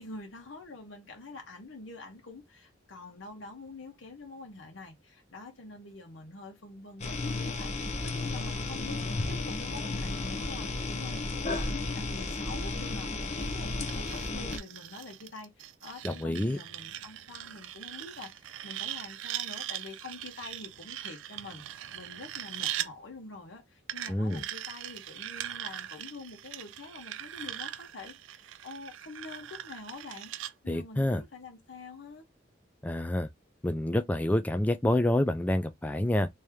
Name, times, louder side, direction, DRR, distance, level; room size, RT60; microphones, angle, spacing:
voice 1, 0.0-30.3 30.6-32.3, left 3 dB, 90° left, 1.0 m, -46 dB
sound 1, 7.0-14.6, left 2 dB, 35° left, 0.8 m, -33 dB
sound 2, 13.9-22.9 23.9-30.5, right 12 dB, 90° right, 0.4 m, -40 dB
voice 2, 16.0-16.6 24.1-24.4 30.7-31.2 32.8-33.3 33.6-36.3, left 1 dB, 10° left, 0.3 m, -27 dB
3.2 x 2.7 x 3.4 m
head